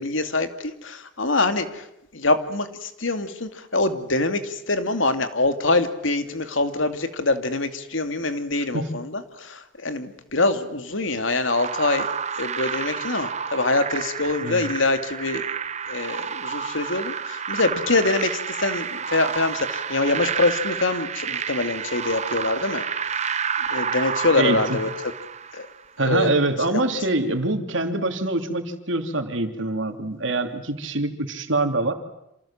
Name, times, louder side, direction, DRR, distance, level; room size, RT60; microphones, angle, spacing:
voice 1, 0.0-1.9 2.1-12.1 12.4-15.5 15.9-22.9 23.7-24.9 25.5-25.7 26.0-26.3 26.7-26.8, left 3 dB, 80° left, 8 dB, 2.5 m, -24 dB
sound 1, 11.4-25.8, right 7 dB, 35° right, 1.0 m, -30 dB
voice 2, 24.4-24.8 26.0-31.9, right 2 dB, 75° right, 6 dB, 3.0 m, -24 dB
28.0 x 27.5 x 7.4 m, 0.82 s
head